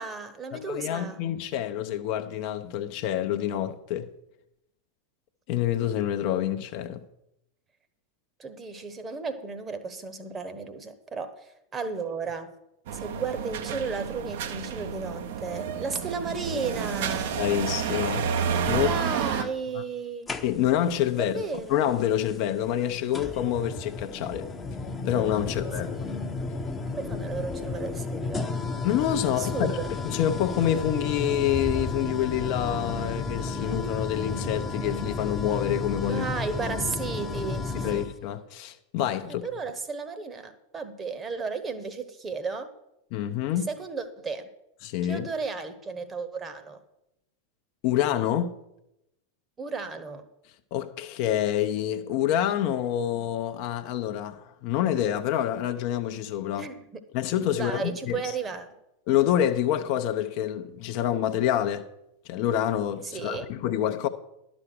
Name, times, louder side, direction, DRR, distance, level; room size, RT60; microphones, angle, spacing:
voice 1, 0.0-1.2 8.4-12.5 12.9-17.4 18.7-20.3 21.1-21.8 25.5-26.2 26.9-28.5 29.3-29.9 36.1-38.0 39.2-42.7 43.6-44.5 45.0-46.8 49.6-50.3 56.6-56.8 57.5-58.7 63.0-63.5, right 4 dB, 20° right, 1.0 m, -34 dB
voice 2, 0.5-4.1 5.5-7.0 17.3-18.3 18.7-18.9 19.4-19.5 20.4-21.4 21.7-24.5 25.1-25.9 28.8-29.8 30.0-36.3 37.7-39.4 43.1-43.7 44.8-45.3 47.8-48.6 50.7-56.7 57.1-58.2 59.1-61.9 62.3-64.1, left 11 dB, 45° left, 0.7 m, -27 dB
sound 1, 12.9-19.4, right 7 dB, 55° right, 0.8 m, -30 dB
sound 2, 20.3-20.9 22.3-22.4 23.1-38.1, left 3 dB, 15° left, 0.8 m, -32 dB
11.5 x 6.1 x 6.6 m
figure-of-eight pair, 90°, 0 cm